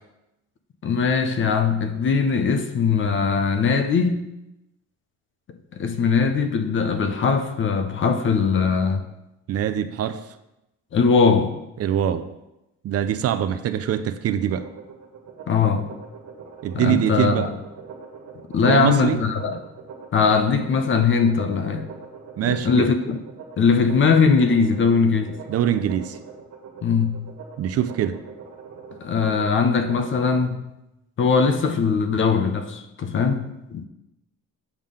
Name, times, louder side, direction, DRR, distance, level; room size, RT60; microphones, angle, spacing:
voice 1, 0.8-4.2 5.8-9.0 10.9-11.6 15.5-15.9 16.7-17.5 18.5-19.6 20.1-21.8 22.5-23.2 23.6-25.4 26.8-27.3 29.0-30.6 31.2-33.8, left 5 dB, 40° left, 9 dB, 0.7 m, -20 dB
voice 2, 9.5-10.3 11.8-12.3 12.8-14.7 16.6-17.5 18.6-19.2 22.4-22.9 25.5-26.2 27.6-28.2, right 10 dB, 50° right, 11 dB, 0.5 m, -23 dB
sound 1, 14.4-30.4, right 5 dB, 70° right, 1.5 m, -42 dB
7.3 x 3.7 x 6.4 m, 0.91 s
cardioid pair, 150°, 31 cm